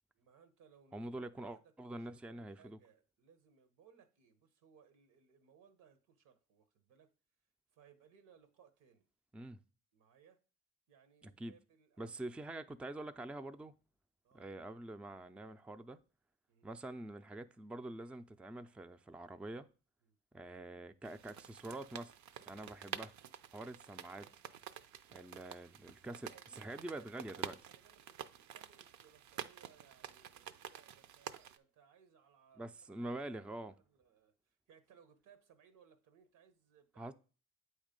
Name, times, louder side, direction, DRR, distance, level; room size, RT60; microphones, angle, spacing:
voice 1, 0.1-7.1 7.7-9.1 9.9-10.4 10.9-12.2 14.2-14.5 16.5-16.7 20.0-20.2 23.7-24.0 26.0-33.5 33.8-37.1, right 7 dB, 90° right, 1.0 m, -66 dB
voice 2, 0.9-2.8 9.3-9.6 11.2-11.5 12.0-13.7 14.3-16.0 16.6-19.7 20.3-22.1 22.5-23.1 23.5-24.3 25.1-26.2 26.6-27.6 32.6-33.7 37.0-37.1, right 1 dB, 5° right, 0.3 m, -46 dB
sound 1, 21.0-31.6, right 9 dB, 65° right, 0.5 m, -49 dB
8.1 x 3.1 x 5.1 m
cardioid pair, 90°, 30 cm